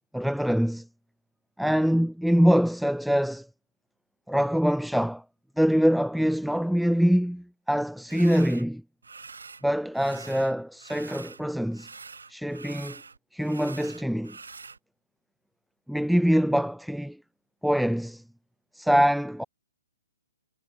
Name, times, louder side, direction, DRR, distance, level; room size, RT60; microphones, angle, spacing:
voice 1, 0.1-0.9 1.6-3.5 4.3-5.2 5.6-8.8 9.6-11.9 12.3-13.0 13.3-14.4 15.9-17.2 17.6-18.2 18.7-19.4, equal, ahead, 0.9 m, -24 dB
sound 1, 8.1-8.6 9.0-9.6 9.9-11.4 11.7-14.8, right 4 dB, 90° right, 3.9 m, -45 dB
hypercardioid pair, 135°, 0 cm